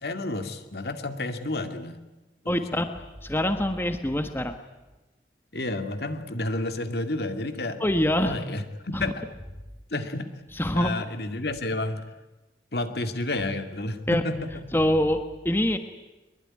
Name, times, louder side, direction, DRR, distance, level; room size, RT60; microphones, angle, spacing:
voice 1, 0.0-2.0 2.4-2.8 5.5-7.8 8.2-9.2 9.9-10.3 10.8-12.0 12.7-14.5, left 2 dB, 65° left, 7 dB, 2.3 m, -30 dB
voice 2, 2.5-2.9 3.2-4.6 7.8-8.4 8.9-9.0 10.5-10.9 14.1-14.2 14.7-15.8, left 1 dB, 15° left, 7 dB, 1.3 m, -24 dB
23.0 x 22.0 x 9.9 m, 1.1 s
head